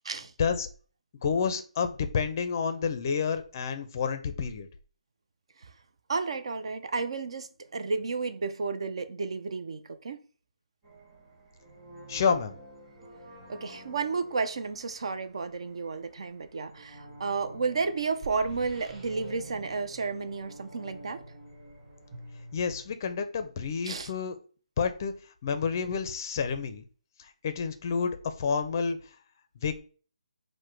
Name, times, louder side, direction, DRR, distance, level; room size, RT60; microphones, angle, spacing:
voice 1, 1.2-4.7 12.1-12.5 22.5-24.4 24.8-25.1 25.4-26.8 27.2-29.0 29.6-29.8, left 6 dB, 30° left, 0.5 m, -29 dB
voice 2, 6.1-10.2 13.5-21.2 23.8-24.1, right 4 dB, 50° right, 0.5 m, -32 dB
sound 1, 10.8-22.8, right 1 dB, 15° right, 1.7 m, -48 dB
4.7 x 2.1 x 4.5 m
hypercardioid pair, 170°, 4 cm